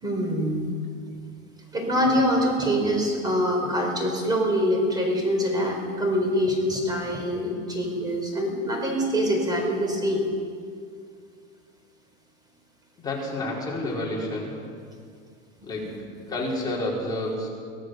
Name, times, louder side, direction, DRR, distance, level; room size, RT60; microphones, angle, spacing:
voice 1, 0.0-0.7 1.7-10.3 15.7-16.0, equal, 15° right, 2 dB, 4.6 m, -24 dB
voice 2, 13.0-14.6 15.6-16.0 16.3-17.5, left 1 dB, 15° left, -5 dB, 5.2 m, -29 dB
25.0 x 16.5 x 6.8 m, 2.2 s
supercardioid pair, 155°, 29 cm